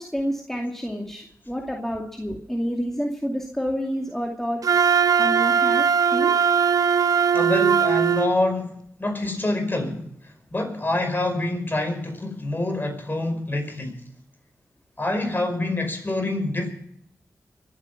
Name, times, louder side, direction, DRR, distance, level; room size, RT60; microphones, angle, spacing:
voice 1, 0.0-6.3, equal, 5° left, 0 dB, 2.4 m, -29 dB
Wind instrument woodwind instrument, 4.6-8.3, right 7 dB, 70° right, 0.7 m, -19 dB
voice 2, 7.3-14.0 15.0-16.7, left 2 dB, 35° left, 4 dB, 5.2 m, -26 dB
24.5 x 8.8 x 6.0 m, 0.69 s
cardioid pair, 45°, 6 cm